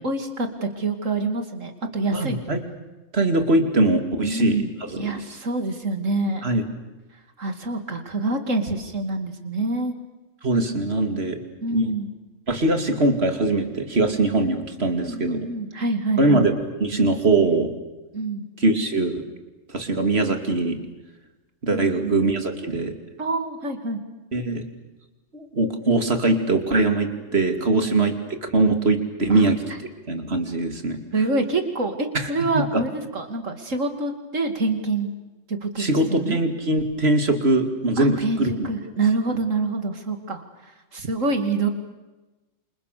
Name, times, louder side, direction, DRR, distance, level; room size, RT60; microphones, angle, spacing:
voice 1, 0.0-2.4 4.2-4.7 5.0-6.4 7.4-9.9 11.6-12.1 15.0-16.5 18.1-18.5 21.7-22.2 23.2-24.0 27.7-28.1 29.3-29.5 31.1-35.1 35.5-36.4 38.0-41.7, right 3 dB, 75° right, 6 dB, 3.0 m, -26 dB
voice 2, 2.1-2.6 3.1-4.6 4.9-5.1 6.4-6.6 10.4-11.4 11.7-11.9 12.5-15.5 16.2-17.7 18.6-19.2 19.7-20.8 21.6-22.9 24.3-24.6 25.3-29.6 30.1-31.0 32.1-32.3 32.5-32.8 35.8-38.5, right 2 dB, 50° right, 6 dB, 2.9 m, -22 dB
28.0 x 27.0 x 6.9 m, 1.1 s
omnidirectional pair, 1.3 m